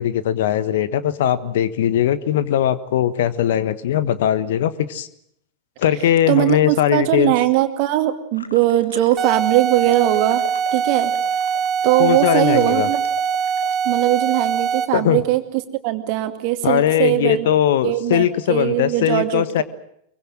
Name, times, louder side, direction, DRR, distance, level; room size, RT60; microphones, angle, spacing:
voice 1, 0.0-5.1 5.8-7.3 12.0-12.9 14.9-15.2 16.6-19.6, left 10 dB, 55° left, 15 dB, 1.3 m, -19 dB
voice 2, 6.3-10.4 10.7-11.1 11.8-13.0 13.8-15.4 15.8-17.5 17.8-19.6, right 15 dB, 45° right, 8 dB, 2.3 m, -20 dB
sound 1, 8.3-9.5 9.7-13.7, left 4 dB, 75° left, 1.5 m, -38 dB
sound 2, 9.2-15.1, right 7 dB, 25° right, 2.4 m, -22 dB
24.0 x 23.5 x 7.6 m, 0.74 s
figure-of-eight pair, 90°, 0 cm